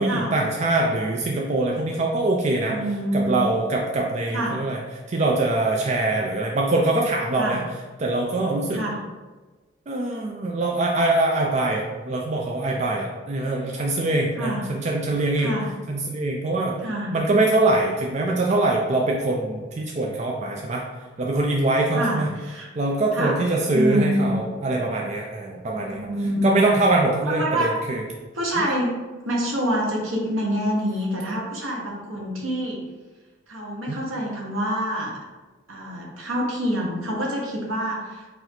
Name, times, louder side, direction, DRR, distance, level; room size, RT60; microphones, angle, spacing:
voice 1, 0.0-2.8 3.1-4.8 5.1-7.6 8.0-8.8 9.9-15.6 15.9-16.8 17.1-20.9 21.2-22.3 22.8-26.1 26.4-28.0 28.6-28.7 33.9-34.0, right 2 dB, 35° right, -1 dB, 0.4 m, -23 dB
voice 2, 2.7-3.5 4.3-4.6 7.4-7.6 8.7-9.0 14.2-14.6 15.4-15.7 16.8-17.1 20.1-20.2 21.9-22.7 23.1-23.4 23.7-24.3 25.9-26.5 27.2-27.7 28.3-28.9 29.2-32.8 33.5-35.1 35.7-38.3, equal, 80° right, -2 dB, 1.1 m, -26 dB
4.0 x 2.6 x 4.4 m, 1.3 s
head